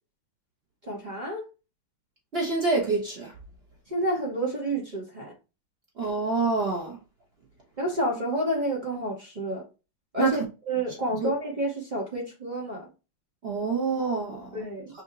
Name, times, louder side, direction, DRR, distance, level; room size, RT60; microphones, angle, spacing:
voice 1, 0.9-1.5 3.9-5.3 7.8-9.6 10.1-12.9 14.5-14.9, right 1 dB, 35° right, 0.8 m, -29 dB
voice 2, 2.3-3.3 6.0-7.0 10.2-10.4 11.2-11.3 13.4-14.6 14.9-15.0, right 4 dB, 65° right, 0.6 m, -27 dB
5.6 x 2.7 x 2.6 m
omnidirectional pair, 2.2 m